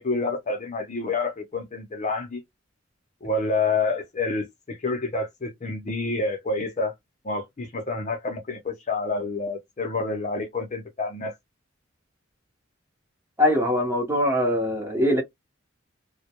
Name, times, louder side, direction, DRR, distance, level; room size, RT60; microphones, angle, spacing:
voice 1, 0.0-2.4 3.2-6.9 7.2-11.3, left 3 dB, 35° left, 0.5 m, -28 dB
voice 2, 13.4-15.2, left 1 dB, 15° right, 0.8 m, -22 dB
2.1 x 2.1 x 2.8 m
head